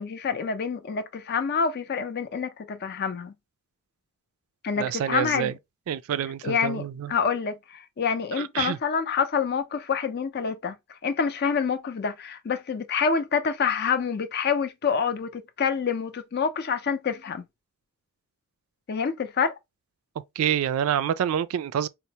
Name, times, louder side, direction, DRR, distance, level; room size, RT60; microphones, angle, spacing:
voice 1, 0.0-3.3 4.6-5.5 6.4-10.7 11.0-17.4 18.9-19.6, left 6 dB, 50° left, 0.4 m, -27 dB
voice 2, 4.8-5.5 5.9-7.1 8.3-8.8 20.4-21.9, right 9 dB, 75° right, 0.3 m, -27 dB
4.2 x 2.0 x 2.7 m
head